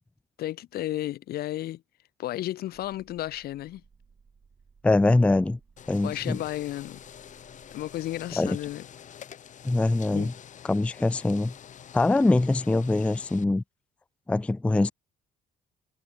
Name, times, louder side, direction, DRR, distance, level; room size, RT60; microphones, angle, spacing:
voice 1, 0.4-1.8 2.2-3.8 6.0-7.0 7.7-8.9 10.1-10.3, left 14 dB, 65° left, 1.1 m, -33 dB
sound 1, 2.7-8.7, right 5 dB, 30° right, 5.1 m, -60 dB
voice 2, 4.8-5.6 5.9-6.4 8.4-8.6 9.6-10.3 10.7-11.5 11.9-13.6 14.3-14.9, left 2 dB, 5° left, 0.4 m, -23 dB
sound 2, 5.8-13.4, left 9 dB, 45° left, 2.0 m, -47 dB
cardioid pair, 110°, 17 cm